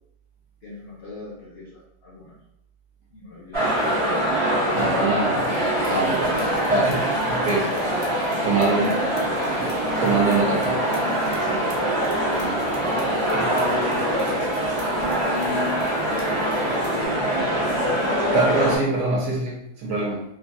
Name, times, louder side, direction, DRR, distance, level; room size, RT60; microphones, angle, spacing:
voice 1, 0.6-2.4 3.1-3.6 12.7-17.7, left 3 dB, 50° left, -6 dB, 0.8 m, -37 dB
sound 1, 3.5-18.8, right 1 dB, 30° right, 0.6 m, -24 dB
voice 2, 4.4-5.5 5.9-7.9 8.4-9.0 9.6-9.7 10.0-10.9 11.7-11.8 13.3-13.4 18.3-20.2, right 3 dB, 60° right, -4 dB, 1.0 m, -24 dB
sound 2, 5.4-17.1, left 3 dB, 80° left, 1.2 m, -39 dB
3.1 x 2.2 x 2.6 m, 0.79 s
omnidirectional pair, 1.7 m